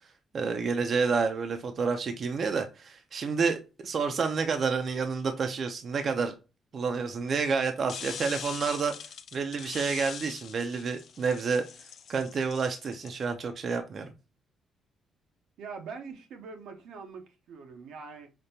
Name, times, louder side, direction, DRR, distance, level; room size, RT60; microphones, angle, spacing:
voice 1, 0.3-6.3 6.7-11.6 12.1-14.1, right 5 dB, 50° right, 0.5 m, -29 dB
sound 1, 7.9-13.2, left 7 dB, 65° left, 0.4 m, -43 dB
voice 2, 15.6-18.3, right 5 dB, 80° right, 0.7 m, -43 dB
5.1 x 2.1 x 2.8 m
cardioid pair, 90°, 0 cm